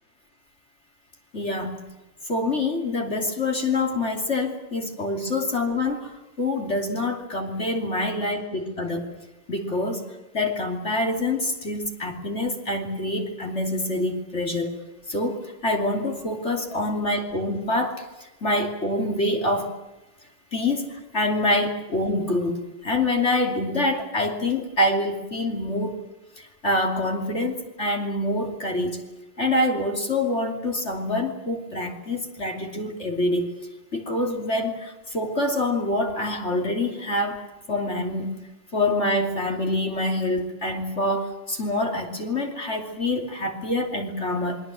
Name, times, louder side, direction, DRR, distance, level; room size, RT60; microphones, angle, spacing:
voice 1, 1.3-1.9 2.3-9.1 9.5-10.1 10.3-14.7 15.1-18.0 18.4-19.7 20.5-26.1 26.4-29.0 29.4-33.5 33.9-37.4 37.7-38.4 38.7-44.6, left 1 dB, 35° left, 2 dB, 3.1 m, -26 dB
28.0 x 22.5 x 7.6 m, 1.0 s
omnidirectional pair, 2.2 m